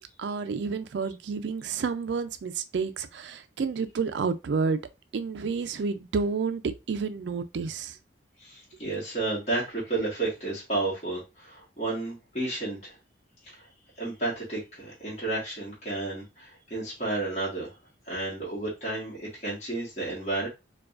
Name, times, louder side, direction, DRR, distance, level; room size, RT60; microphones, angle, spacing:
voice 1, 0.2-4.8 5.1-6.6 6.9-8.0, right 5 dB, 65° right, 0.4 m, -30 dB
voice 2, 8.4-13.0 13.4-13.7 14.0-17.8 18.0-20.5, right 2 dB, 35° left, 1.4 m, -32 dB
4.7 x 2.3 x 2.4 m
head